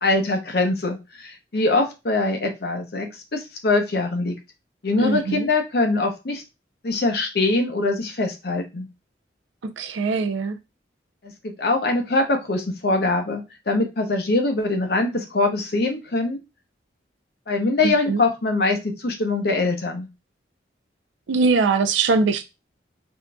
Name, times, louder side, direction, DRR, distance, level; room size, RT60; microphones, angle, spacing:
voice 1, 0.0-4.3 4.8-6.4 6.8-8.9 11.2-16.4 17.5-20.1, left 2 dB, 55° left, 0.6 m, -23 dB
voice 2, 5.0-5.5 9.6-10.6 17.8-18.2 21.3-22.4, right 4 dB, 80° right, 0.4 m, -22 dB
3.6 x 2.5 x 2.2 m
head